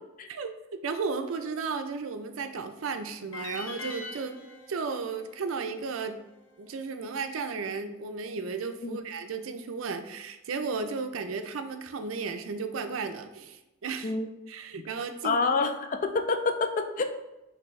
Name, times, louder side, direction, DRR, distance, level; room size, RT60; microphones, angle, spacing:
voice 1, 0.3-4.4 4.7-6.2 6.6-14.1 14.5-15.4, right 4 dB, 75° right, 7 dB, 0.5 m, -34 dB
sound 1, 3.3-6.5, left 3 dB, 70° left, 0.8 m, -43 dB
voice 2, 15.2-17.0, left 4 dB, 40° left, 7 dB, 0.4 m, -27 dB
6.0 x 2.7 x 3.2 m, 0.96 s
head